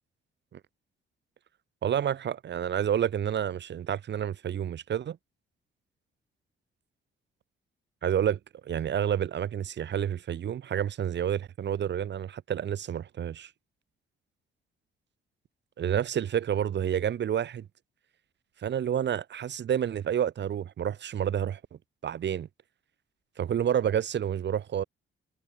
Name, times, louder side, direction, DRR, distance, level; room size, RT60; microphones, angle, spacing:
voice 1, 1.8-5.2 8.0-13.5 15.8-17.7 18.6-22.5 23.4-24.8, right 9 dB, 60° right, 5.9 m, -29 dB
cardioid pair, 90°, 20 cm